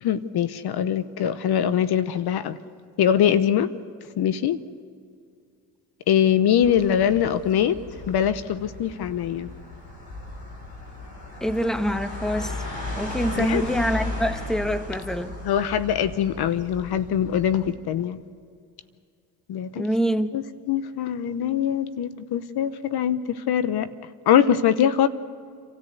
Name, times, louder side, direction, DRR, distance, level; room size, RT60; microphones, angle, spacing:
voice 1, 0.0-2.6 3.0-3.7 4.2-4.6 6.1-9.5 13.4-13.6 15.4-18.2 19.5-19.8 20.3-23.9 24.3-25.1, left 9 dB, 65° left, 14 dB, 0.9 m, -23 dB
sound 1, 6.6-17.7, left 2 dB, 85° left, 5.8 m, -36 dB
voice 2, 11.4-12.6 13.0-15.4 19.8-20.3, equal, ahead, 10 dB, 1.1 m, -25 dB
27.0 x 14.0 x 8.2 m, 2.3 s
supercardioid pair, 70°, 42 cm